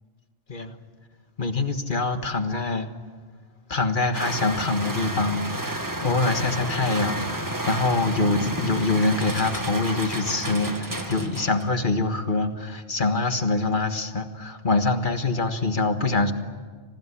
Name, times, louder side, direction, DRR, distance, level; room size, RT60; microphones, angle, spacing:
voice 1, 1.4-2.9 3.7-16.3, left 3 dB, 40° left, 8 dB, 1.6 m, -25 dB
sound 1, 4.1-11.8, right 1 dB, 15° right, 1.7 m, -31 dB
26.0 x 19.0 x 9.9 m, 1.5 s
omnidirectional pair, 1.3 m